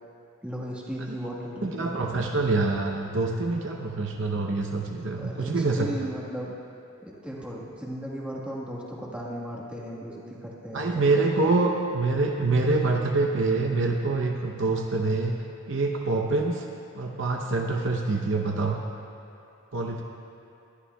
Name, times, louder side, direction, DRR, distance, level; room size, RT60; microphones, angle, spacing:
voice 1, 0.4-2.1 5.1-6.5 7.0-11.5, equal, 5° right, -4 dB, 1.3 m, -36 dB
voice 2, 1.6-5.9 10.7-15.3 15.7-16.6 16.9-18.8 19.7-20.0, right 3 dB, 55° right, 2 dB, 0.7 m, -25 dB
21.0 x 11.5 x 2.3 m, 2.8 s
head